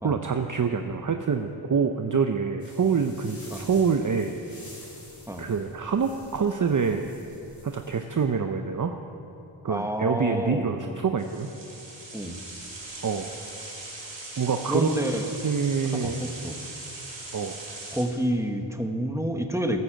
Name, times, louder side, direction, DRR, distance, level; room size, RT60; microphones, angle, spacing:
voice 1, 0.0-4.3 5.4-7.1 7.6-9.0 9.6-11.5 13.0-13.3 14.4-15.1 15.4-16.2 17.3-17.6, right 5 dB, 40° right, 6 dB, 0.7 m, -26 dB
sound 1, 2.6-8.2, left 1 dB, 45° left, 4.6 m, -49 dB
voice 2, 9.7-11.0 12.1-12.4 14.7-15.3 15.8-16.6 17.9-19.8, equal, 5° right, 4 dB, 1.4 m, -29 dB
sound 2, 11.2-18.0, right 2 dB, 70° right, 4.4 m, -40 dB
14.0 x 12.0 x 7.5 m, 2.9 s
wide cardioid pair, 60°, 48 cm